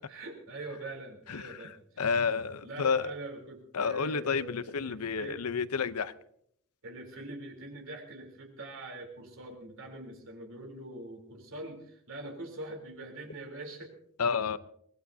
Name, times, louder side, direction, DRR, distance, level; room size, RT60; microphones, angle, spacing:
voice 1, 0.0-2.2 2.6-5.4 6.8-14.0, right 2 dB, 60° right, 2 dB, 3.5 m, -44 dB
voice 2, 2.0-3.1 3.7-6.1 14.2-14.6, left 5 dB, 80° left, 14 dB, 0.7 m, -30 dB
23.5 x 18.5 x 2.7 m, 0.69 s
head